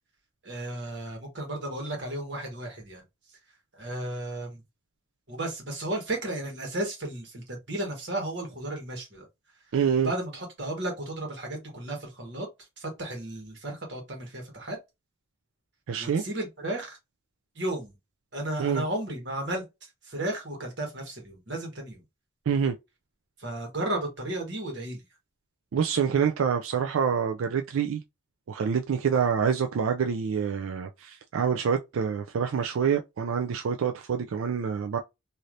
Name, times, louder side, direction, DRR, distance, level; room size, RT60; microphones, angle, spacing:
voice 1, 0.4-3.0 3.7-4.6 5.3-9.2 10.0-12.5 12.8-14.8 16.0-17.0 17.5-17.9 18.3-22.0 23.4-25.0, right 1 dB, 60° right, 1.4 m, -34 dB
voice 2, 9.7-10.1 15.9-16.2 18.6-18.8 22.5-22.7 25.7-28.0 28.5-35.0, right 7 dB, 90° right, 0.4 m, -26 dB
3.2 x 2.7 x 2.5 m
head